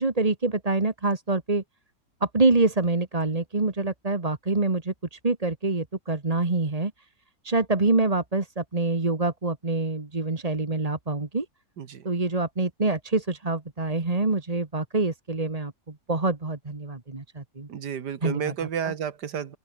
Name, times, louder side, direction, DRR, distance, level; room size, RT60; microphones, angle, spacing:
voice 1, 0.0-1.6 2.2-6.9 7.4-11.5 12.1-17.7 18.2-18.9, right 3 dB, 20° right, 1.8 m, -26 dB
voice 2, 17.7-19.6, right 8 dB, 70° right, 1.9 m, -31 dB
open air
omnidirectional pair, 1.9 m